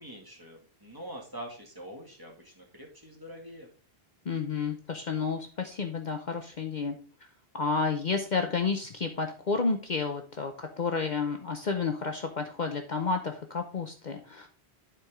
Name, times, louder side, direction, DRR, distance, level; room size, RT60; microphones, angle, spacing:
voice 1, 0.0-3.7, equal, 20° right, 0 dB, 2.1 m, -44 dB
voice 2, 4.3-7.0 7.5-14.5, left 4 dB, 50° left, 5 dB, 0.8 m, -31 dB
11.0 x 4.6 x 3.6 m, 0.39 s
omnidirectional pair, 1.1 m